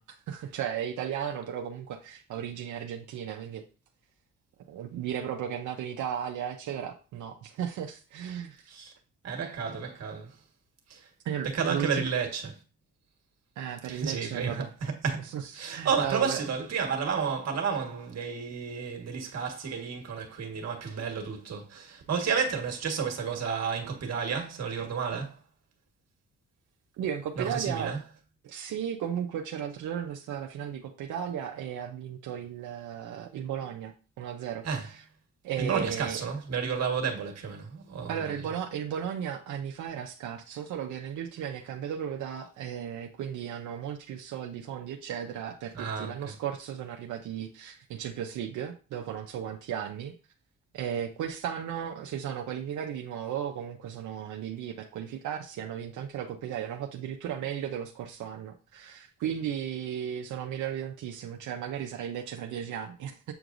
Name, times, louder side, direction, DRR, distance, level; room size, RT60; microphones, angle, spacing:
voice 1, 0.0-3.6 4.7-8.6 11.2-12.1 13.6-14.7 15.3-15.4 15.7-16.4 27.0-27.9 28.4-34.6 35.4-36.2 38.1-50.1 50.7-63.3, right 9 dB, 75° right, 0.8 m, -35 dB
voice 2, 9.2-10.4 10.9-11.1 11.4-12.6 13.9-25.4 27.3-28.0 34.6-34.9 35.6-38.4 45.7-46.3, right 6 dB, 60° right, 1.6 m, -31 dB
8.0 x 4.6 x 2.6 m
cardioid pair, 90°, 30 cm